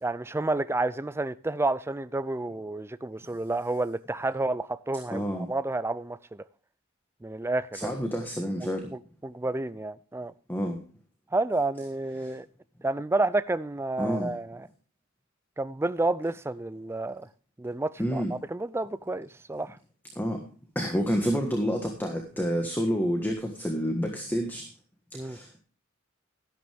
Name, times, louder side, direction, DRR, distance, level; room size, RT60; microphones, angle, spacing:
voice 1, 0.0-6.4 7.2-7.9 8.6-10.3 11.3-12.5 12.8-14.7 15.6-17.3 17.6-18.2 18.5-19.8 25.1-25.4, right 2 dB, 10° right, 0.4 m, -30 dB
voice 2, 5.1-5.5 7.7-8.9 10.5-10.8 12.2-12.3 14.0-14.3 18.0-18.3 20.1-20.4 20.7-24.6 25.1-25.6, equal, 10° left, 1.5 m, -29 dB
12.5 x 11.5 x 3.5 m
head